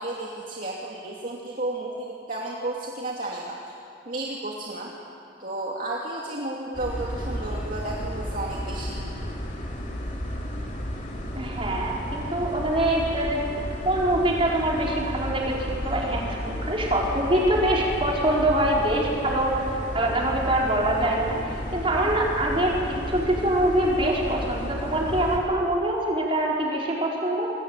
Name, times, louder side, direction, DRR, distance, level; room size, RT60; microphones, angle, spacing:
voice 1, 0.0-3.7 4.1-4.9 5.4-9.0 21.9-22.2, right 2 dB, 45° right, -3 dB, 2.5 m, -33 dB
sound 1, 6.7-25.4, equal, 40° left, 3.7 m, -33 dB
voice 2, 11.3-21.4 21.7-27.5, right 1 dB, 30° right, -3 dB, 4.9 m, -24 dB
27.5 x 21.5 x 8.9 m, 2.6 s
head